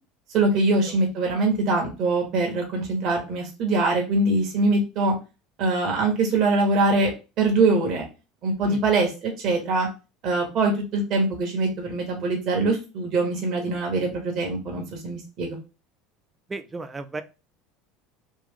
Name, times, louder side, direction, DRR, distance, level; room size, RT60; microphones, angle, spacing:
voice 1, 0.3-5.1 5.6-7.1 7.4-8.0 8.4-9.9 10.2-15.6, right 2 dB, 50° right, 1 dB, 1.3 m, -23 dB
voice 2, 16.5-17.2, right 3 dB, 20° right, 9 dB, 0.5 m, -34 dB
3.3 x 2.6 x 3.7 m, 0.30 s
hypercardioid pair, 70°, 0 cm